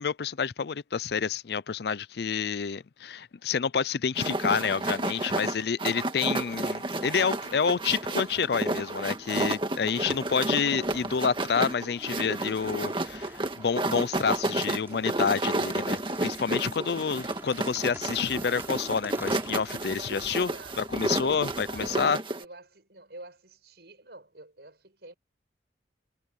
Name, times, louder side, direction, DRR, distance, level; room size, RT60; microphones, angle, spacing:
voice 1, 0.0-20.5 20.8-22.2, left 6 dB, 65° left, 0.5 m, -28 dB
sound 1, 4.2-22.4, right 2 dB, 30° right, 1.8 m, -31 dB
sound 2, 6.3-22.1, right 1 dB, 15° right, 3.5 m, -49 dB
voice 2, 20.3-20.8 21.7-22.1 22.4-25.1, right 2 dB, 65° right, 6.2 m, -49 dB
head